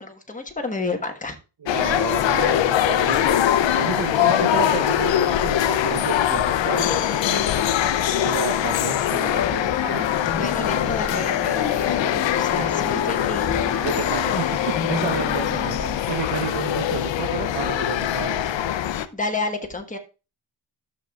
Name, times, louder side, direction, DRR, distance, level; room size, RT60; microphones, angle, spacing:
voice 1, 0.0-1.4 10.3-13.7 19.1-20.0, left 3 dB, 15° left, 4 dB, 1.2 m, -30 dB
voice 2, 1.6-3.4 3.7-7.4 8.2-10.1 11.8-12.7 13.7-18.4, right 7 dB, 60° right, 5 dB, 0.9 m, -31 dB
sound 1, 1.7-19.1, left 11 dB, 80° left, 0.6 m, -22 dB
sound 2, 9.2-16.0, left 6 dB, 60° left, 1.7 m, -31 dB
12.5 x 6.8 x 2.3 m, 0.31 s
wide cardioid pair, 120°, 44 cm